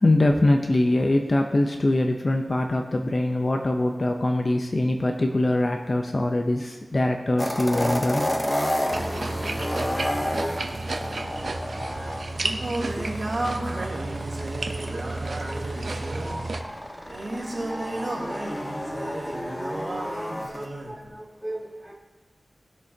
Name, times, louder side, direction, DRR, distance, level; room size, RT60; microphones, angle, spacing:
voice 1, 0.0-8.2, left 1 dB, 40° left, 3 dB, 0.7 m, -23 dB
sound 1, 7.4-20.7, equal, 20° left, 0.9 m, -31 dB
sound 2, 8.9-16.6, right 2 dB, 70° right, 0.7 m, -32 dB
Singing, 11.9-20.9, right 2 dB, 50° right, 3.7 m, -33 dB
voice 2, 15.2-15.6 15.9-16.5 17.7-18.3 18.9-19.2 19.6-21.9, right 1 dB, 10° right, -4 dB, 2.0 m, -40 dB
19.0 x 6.5 x 2.9 m, 1.3 s
wide cardioid pair, 80°, 0 cm